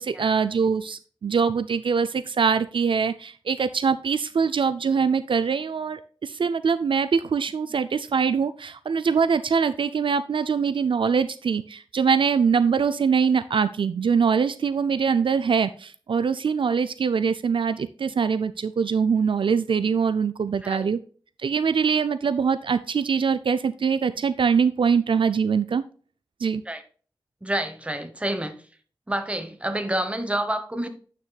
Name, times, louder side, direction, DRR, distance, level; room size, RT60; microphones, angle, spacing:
voice 1, 0.0-21.0 21.4-25.8 26.4-26.6, right 6 dB, 70° right, 12 dB, 0.4 m, -23 dB
voice 2, 20.6-20.9 26.7-26.8 27.4-28.5 29.1-30.9, right 1 dB, 15° right, 8 dB, 1.1 m, -28 dB
9.3 x 6.1 x 2.3 m, 0.41 s
wide cardioid pair, 85°, 9 cm